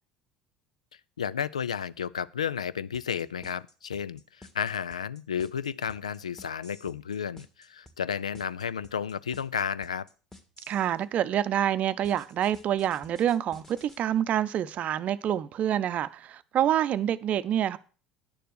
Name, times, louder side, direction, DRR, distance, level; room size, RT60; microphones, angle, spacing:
voice 1, 1.2-10.1, left 8 dB, 80° left, 0.4 m, -32 dB
sound 1, 2.9-10.9 12.0-14.0, left 2 dB, 10° left, 1.9 m, -52 dB
voice 2, 10.7-17.8, right 10 dB, 40° right, 0.6 m, -27 dB
10.0 x 6.8 x 6.3 m
figure-of-eight pair, 65°, 3 cm